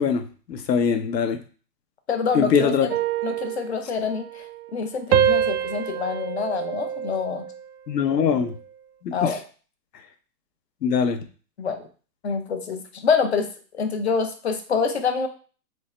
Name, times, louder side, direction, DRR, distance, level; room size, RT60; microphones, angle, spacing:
voice 1, 0.0-1.4 2.3-2.9 7.9-8.5 9.0-9.4 10.8-11.2, left 6 dB, 85° left, 7 dB, 1.0 m, -22 dB
voice 2, 2.1-2.7 3.2-4.3 4.7-7.4 9.1-9.4 11.6-11.8 12.2-13.5 13.7-15.3, left 5 dB, 45° left, 6 dB, 0.6 m, -26 dB
sound 1, 2.9-4.8 5.1-7.7 8.1-8.5, right 8 dB, 70° right, 0.5 m, -26 dB
3.5 x 3.3 x 4.2 m, 0.38 s
hypercardioid pair, 175°, 48 cm